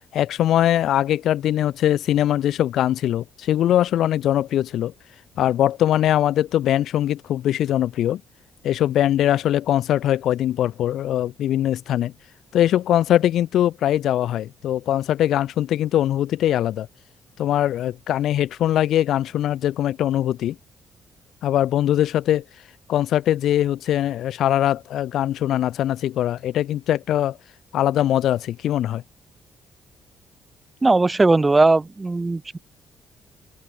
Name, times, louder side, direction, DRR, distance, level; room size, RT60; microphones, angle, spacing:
voice 1, 0.1-4.9 5.4-8.2 8.6-12.1 12.5-16.9 17.4-20.6 21.4-22.4 22.9-27.4 27.7-29.0, left 12 dB, 75° left, 0.5 m, -21 dB
voice 2, 30.8-32.6, right 3 dB, 20° right, 0.4 m, -18 dB
cardioid pair, 90°, 0 cm